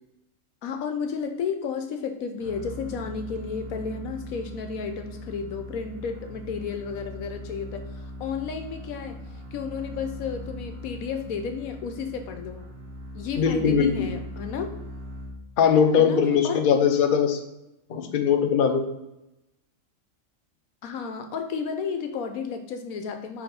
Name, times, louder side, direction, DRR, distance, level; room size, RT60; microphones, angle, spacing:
voice 1, 0.6-9.2 9.5-12.6 13.1-14.7 16.0-16.7 20.8-23.4, left 6 dB, 85° left, 6 dB, 1.2 m, -32 dB
sound 1, 2.4-15.8, left 1 dB, 75° right, 1.7 m, -40 dB
voice 2, 13.4-14.1 15.6-17.4 17.9-18.9, left 7 dB, 45° left, 5 dB, 0.8 m, -21 dB
4.9 x 3.7 x 5.1 m, 0.91 s
omnidirectional pair, 1.5 m